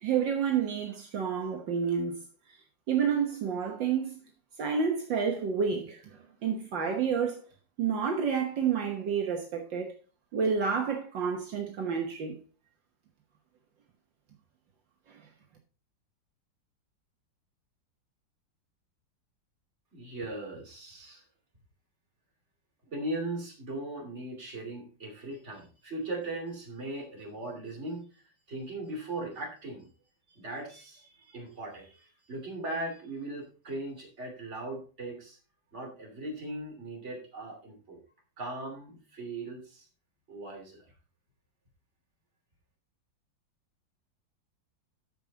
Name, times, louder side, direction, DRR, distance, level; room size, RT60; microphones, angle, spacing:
voice 1, 0.0-2.2 2.9-4.2 4.6-7.4 7.8-9.9 10.3-12.4 15.1-15.2, right 6 dB, 70° right, 1.9 m, -29 dB
voice 2, 19.9-21.2 22.8-28.2 28.5-29.9 30.3-35.4 35.7-38.0 38.4-39.9 40.3-40.9, right 2 dB, 35° right, 3.0 m, -39 dB
13.5 x 5.2 x 4.0 m
omnidirectional pair, 2.1 m